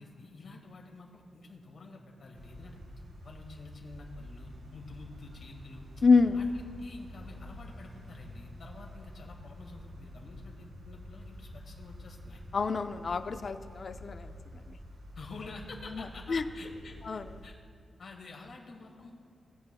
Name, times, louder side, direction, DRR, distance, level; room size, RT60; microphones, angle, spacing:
voice 1, 0.0-2.8 3.2-5.9 6.3-12.4 15.2-17.5 18.0-19.1, left 3 dB, 60° left, 0 dB, 1.8 m, -49 dB
sound 1, 2.3-17.5, left 1 dB, 65° right, 1.6 m, -48 dB
voice 2, 6.0-6.4 12.5-14.3 14.7-14.8 15.9-16.4 17.1-17.3, left 4 dB, 45° left, 9 dB, 0.4 m, -27 dB
19.5 x 8.0 x 2.3 m, 2.5 s
wide cardioid pair, 150°, 0 cm